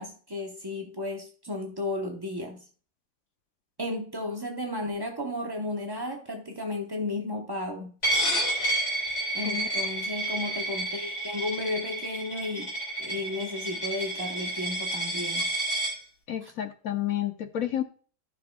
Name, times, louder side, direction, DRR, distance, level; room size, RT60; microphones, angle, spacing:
voice 1, 0.0-2.6 3.8-8.0 9.3-12.7 13.0-15.5 16.4-16.5, left 2 dB, 40° right, 0.3 m, -34 dB
Coin (dropping), 8.0-15.9, right 1 dB, 40° left, 3.4 m, -30 dB
voice 2, 16.3-17.8, left 11 dB, 65° left, 0.9 m, -30 dB
14.0 x 6.0 x 2.2 m
omnidirectional pair, 2.0 m